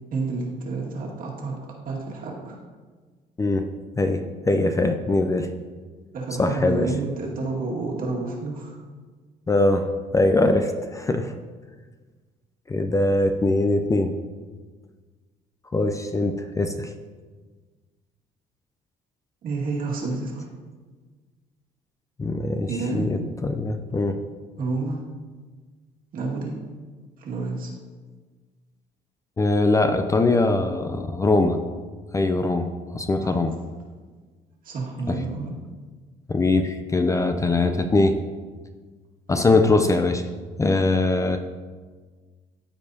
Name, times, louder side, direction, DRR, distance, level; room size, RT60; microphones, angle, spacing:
voice 1, 0.1-1.6 1.8-2.6 6.1-8.8 19.4-20.5 22.7-23.1 24.6-25.0 26.1-26.5 27.2-27.8 33.2-33.4 34.6-35.5, right 3 dB, 55° right, -2 dB, 2.0 m, -29 dB
voice 2, 3.4-3.7 4.0-5.5 6.4-6.9 9.5-9.9 10.1-11.3 12.7-14.1 15.7-16.9 22.2-24.2 29.4-31.6 32.1-33.6 35.1-35.2 36.3-38.2 39.3-40.2 40.6-41.4, left 2 dB, 20° left, 7 dB, 0.4 m, -22 dB
13.5 x 4.7 x 2.8 m, 1.4 s
cardioid pair, 110°, 17 cm